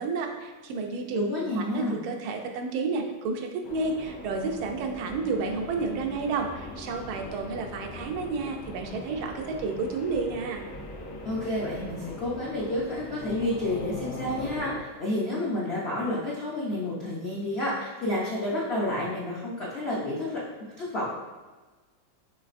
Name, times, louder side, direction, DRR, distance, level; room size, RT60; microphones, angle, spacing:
voice 1, 0.0-1.2 1.6-10.6, right 4 dB, 90° right, 3 dB, 1.5 m, -31 dB
voice 2, 1.1-2.0 11.2-20.4 20.8-21.0, left 1 dB, 75° left, -6 dB, 0.5 m, -30 dB
sound 1, 3.6-14.8, left 2 dB, 90° left, 1.6 m, -41 dB
6.2 x 3.3 x 2.5 m, 1.3 s
omnidirectional pair, 2.2 m